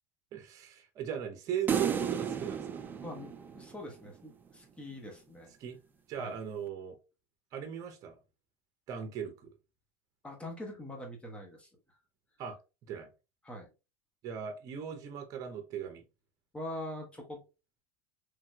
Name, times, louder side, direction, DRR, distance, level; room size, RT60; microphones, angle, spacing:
voice 1, 0.3-2.8 5.6-5.8 6.1-7.0 7.5-8.2 8.9-9.5 12.4-12.6 12.9-13.1 14.2-16.0, right 8 dB, 45° right, 0.8 m, -38 dB
sound 1, 1.7-4.1, right 7 dB, 20° right, 0.4 m, -33 dB
voice 2, 3.0-5.5 6.2-6.4 10.2-12.0 13.4-13.7 16.5-17.4, left 1 dB, 15° left, 1.0 m, -43 dB
3.2 x 2.7 x 2.3 m
supercardioid pair, 115°, 9 cm